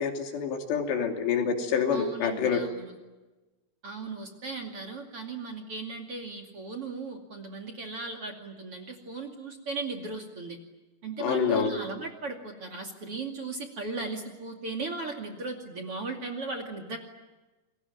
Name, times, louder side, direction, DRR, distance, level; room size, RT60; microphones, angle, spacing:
voice 1, 0.0-2.6 11.2-11.7, left 7 dB, 75° left, 4 dB, 5.0 m, -27 dB
voice 2, 1.9-2.9 3.8-10.6 11.0-17.0, right 3 dB, 40° right, 3 dB, 2.8 m, -37 dB
29.0 x 22.0 x 8.9 m, 1.2 s
omnidirectional pair, 5.0 m